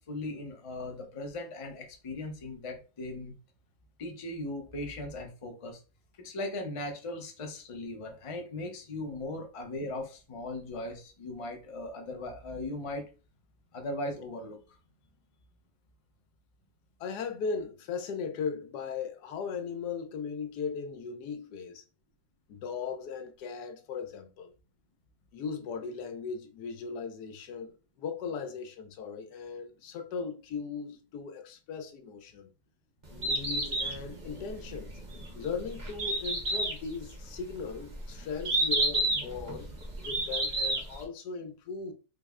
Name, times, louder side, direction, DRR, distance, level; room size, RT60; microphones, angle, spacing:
voice 1, 0.0-3.3 4.0-5.8 6.2-13.1 13.7-14.6, left 2 dB, 50° left, 0.3 m, -38 dB
voice 2, 17.0-21.8 22.5-24.5 25.3-32.5 33.1-35.0 35.3-39.7 40.0-41.9, left 5 dB, 90° left, 1.2 m, -38 dB
Bird, 33.0-41.0, right 2 dB, 35° right, 0.8 m, -31 dB
3.8 x 2.1 x 3.5 m
omnidirectional pair, 1.7 m